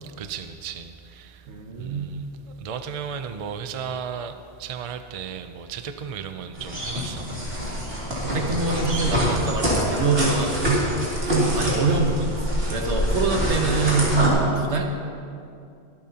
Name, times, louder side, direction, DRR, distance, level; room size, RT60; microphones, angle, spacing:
voice 1, 0.0-1.5 1.8-7.3 11.1-11.7 12.4-12.8, right 7 dB, 45° right, 0.5 m, -36 dB
voice 2, 1.5-2.1 8.2-10.9 11.3-14.9, right 4 dB, 85° right, 1.5 m, -24 dB
sound 1, 6.5-14.3, equal, 65° right, 3.0 m, -25 dB
23.0 x 8.7 x 2.9 m
omnidirectional pair, 1.1 m